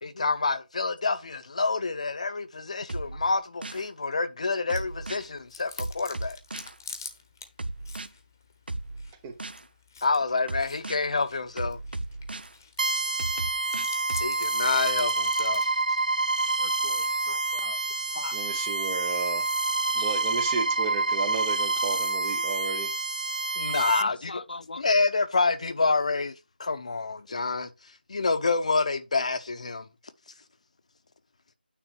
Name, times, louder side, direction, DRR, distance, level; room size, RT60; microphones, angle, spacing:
voice 1, 0.0-6.4 10.0-11.8 14.2-15.6 23.6-24.4 24.8-26.3 26.6-27.7 28.1-29.8, left 3 dB, 40° left, 0.8 m, -27 dB
sound 1, 2.9-3.9 4.7-5.3 5.8-6.8 7.6-8.1 8.7-9.6 10.5-11.0 11.6-12.5 13.2-14.3, right 2 dB, 70° right, 1.0 m, -35 dB
Chewing mastication, 4.7-22.3, left 4 dB, 20° left, 1.0 m, -49 dB
sound 2, 12.8-24.0, right 3 dB, 55° right, 0.6 m, -27 dB
voice 2, 16.6-17.8 18.1-18.4 20.0-20.1 23.7-24.8, left 3 dB, 60° left, 0.3 m, -41 dB
voice 3, 18.3-19.5 19.9-22.9, right 5 dB, 10° right, 0.7 m, -33 dB
9.2 x 3.8 x 6.3 m
figure-of-eight pair, 170°, 5 cm